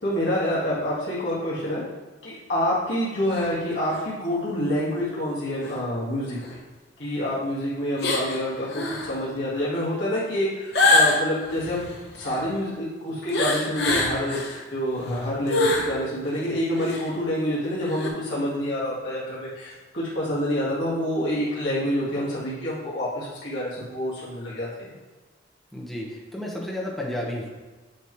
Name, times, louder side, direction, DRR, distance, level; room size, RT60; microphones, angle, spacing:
voice 1, 0.0-1.8 2.2-6.6 7.0-11.9 12.2-14.4 14.7-24.9, equal, 80° left, -9 dB, 1.8 m, -27 dB
sound 1, 3.3-3.5 3.9-4.0 5.6-5.7 6.4-6.5 8.0-8.4 8.7-9.1 10.7-12.5 13.3-14.6 15.0-15.9 16.3-16.4 16.7-17.1 17.9-18.1, left 2 dB, 65° left, 1.1 m, -24 dB
voice 2, 25.7-27.6, left 1 dB, ahead, -3 dB, 1.0 m, -32 dB
8.5 x 3.1 x 4.5 m, 1.3 s
head